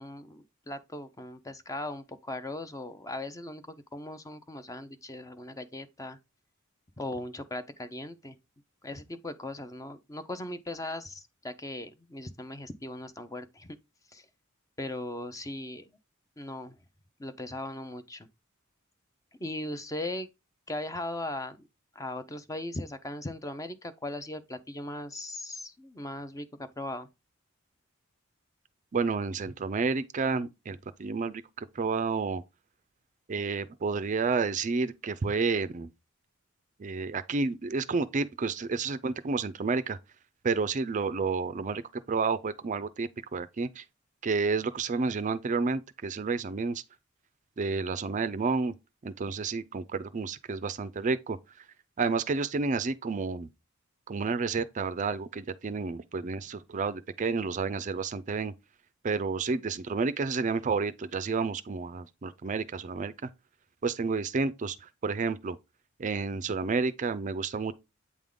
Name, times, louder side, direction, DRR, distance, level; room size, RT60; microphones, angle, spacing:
voice 1, 0.0-6.2 7.0-8.4 8.8-13.8 14.1-14.3 14.8-15.9 16.4-16.8 17.2-18.3 19.4-20.3 20.7-21.7 21.9-26.5 26.8-27.1, left 1 dB, 15° left, 0.6 m, -38 dB
voice 2, 28.9-32.4 33.3-35.9 36.8-40.0 40.4-43.8 44.2-46.8 47.6-48.7 49.0-51.6 52.0-53.5 54.1-58.5 59.0-63.3 63.8-65.6 66.0-67.7, right 4 dB, 35° right, 0.4 m, -30 dB
8.3 x 3.6 x 3.7 m
head